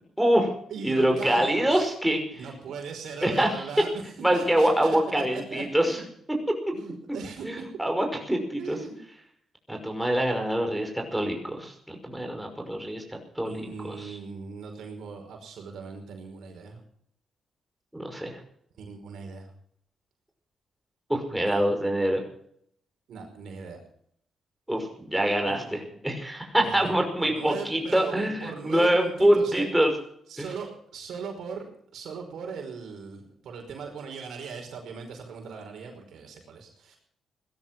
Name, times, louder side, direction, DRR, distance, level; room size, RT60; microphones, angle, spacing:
voice 1, 0.2-0.5 0.8-2.2 3.2-3.7 4.2-6.0 6.5-6.6 7.4-8.8 9.7-14.1 17.9-18.4 21.1-22.2 24.7-29.9 30.4-30.5, right 1 dB, 5° right, 3 dB, 5.6 m, -25 dB
voice 2, 0.7-1.9 2.3-4.0 4.3-6.1 6.7-7.6 8.6-8.9 13.4-16.8 18.8-19.5 21.4-21.6 23.1-23.8 25.5-25.8 26.6-26.9 27.2-29.7 30.3-31.7 31.9-37.0, right 5 dB, 75° right, 3 dB, 5.1 m, -39 dB
18.5 x 12.5 x 6.0 m, 0.65 s
cardioid pair, 75°, 0 cm